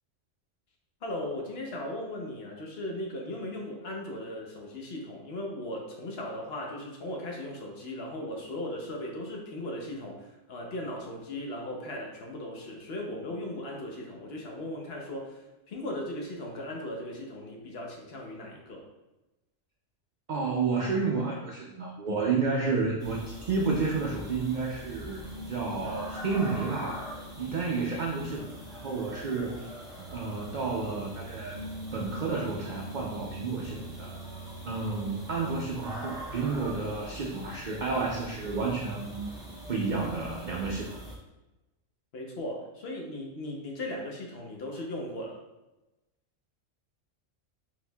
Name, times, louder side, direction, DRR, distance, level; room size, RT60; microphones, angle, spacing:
voice 1, 1.0-18.9 42.1-45.4, left 1 dB, 60° left, -1 dB, 0.9 m, -37 dB
voice 2, 20.3-27.1 27.4-28.5 28.7-29.7 30.1-31.6 31.9-34.1 34.6-39.3 39.7-41.0, right 4 dB, 65° right, -1 dB, 0.4 m, -31 dB
sound 1, 23.0-41.2, right 1 dB, 5° right, 0.7 m, -44 dB
Piano, 23.7-36.2, right 1 dB, 80° right, 1.0 m, -45 dB
4.3 x 4.0 x 2.2 m, 1.0 s
omnidirectional pair, 1.3 m